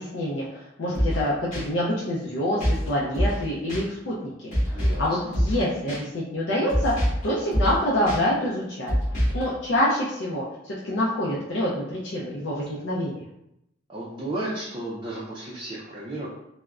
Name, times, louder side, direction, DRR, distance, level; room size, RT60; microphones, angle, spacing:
voice 1, 0.0-8.9 9.3-13.2, left 1 dB, 70° left, -5 dB, 0.4 m, -27 dB
sound 1, 0.9-1.2 1.5-1.6 2.6-2.9 3.1-3.4 3.7-3.8 4.5-5.1 5.3-5.6 5.9-6.0 6.7-7.2 7.5-7.8 8.1-8.2 8.9-9.4, equal, 45° left, 1.4 m, -24 dB
voice 2, 4.7-5.3 13.9-16.3, right 1 dB, 25° right, -6 dB, 0.4 m, -33 dB
3.4 x 2.0 x 2.3 m, 0.83 s
head